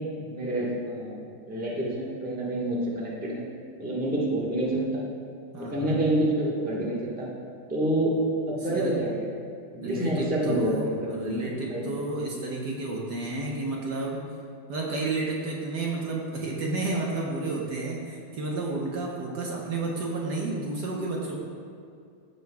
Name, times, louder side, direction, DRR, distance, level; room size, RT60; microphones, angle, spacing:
voice 1, 0.2-1.2 1.5-3.4 3.8-5.0 5.6-7.3 7.7-8.1 8.5-9.1 9.7-11.8, right 1 dB, 5° right, -5 dB, 1.1 m, -28 dB
voice 2, 5.5-6.1 8.7-9.0 9.8-14.2 14.7-21.4, right 2 dB, 60° right, -2 dB, 1.4 m, -31 dB
15.0 x 6.7 x 2.3 m, 2.3 s
omnidirectional pair, 2.2 m